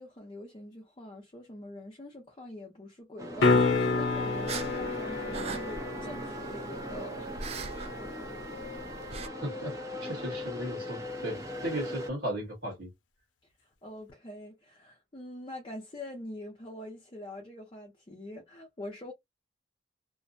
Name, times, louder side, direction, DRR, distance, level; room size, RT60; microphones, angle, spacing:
voice 1, 0.0-7.3 13.8-19.1, left 1 dB, 30° left, 0.6 m, -44 dB
sound 1, 3.2-12.1, equal, 15° right, 0.7 m, -39 dB
sound 2, 3.4-9.4 14.1-14.2, left 3 dB, 85° left, 0.6 m, -30 dB
sound 3, 3.5-9.3, right 4 dB, 35° right, 0.3 m, -43 dB
voice 2, 9.4-9.7 10.0-12.9, right 1 dB, 70° right, 1.2 m, -35 dB
2.6 x 2.1 x 2.5 m
head